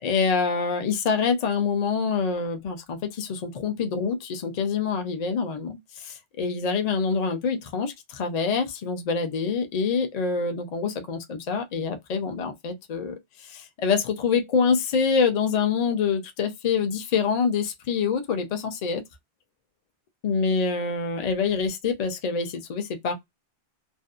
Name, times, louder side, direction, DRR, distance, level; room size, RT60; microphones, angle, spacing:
voice 1, 0.0-19.0 20.2-23.1, left 5 dB, 50° left, 0.6 m, -26 dB
2.6 x 2.2 x 2.3 m
omnidirectional pair, 1.1 m